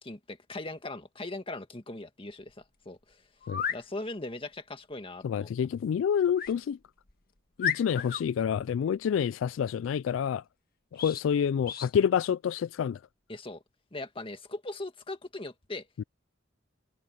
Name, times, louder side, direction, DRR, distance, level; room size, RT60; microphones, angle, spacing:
voice 1, 0.0-3.2 3.7-5.5 13.3-13.6 13.9-15.9, left 2 dB, 30° left, 2.0 m, -40 dB
sound 1, 2.5-2.6 3.4-3.8 6.4-6.6 7.1-7.2 7.6-8.2 11.0-11.3 11.7-11.9, left 8 dB, 50° left, 1.6 m, -33 dB
voice 2, 5.2-6.8 7.6-10.4 10.9-13.0 16.0-16.1, left 8 dB, 85° left, 0.3 m, -28 dB
head